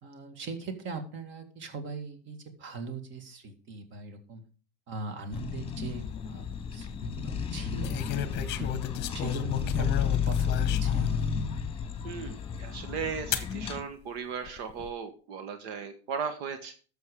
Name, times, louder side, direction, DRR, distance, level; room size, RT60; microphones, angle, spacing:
voice 1, 0.0-4.4 4.9-6.5 6.7-8.8 9.1-11.1, right 4 dB, 35° right, 7 dB, 2.1 m, -40 dB
sound 1, 5.3-13.8, left 7 dB, 15° left, 1.6 m, -32 dB
sound 2, 6.2-6.6 7.8-11.2 11.8-11.9 13.3-13.5 14.4-14.9, left 11 dB, 35° left, 1.0 m, -33 dB
voice 2, 12.0-16.7, right 6 dB, 70° right, 8 dB, 1.5 m, -37 dB
12.0 x 7.0 x 4.9 m, 0.39 s
supercardioid pair, 145°, 33 cm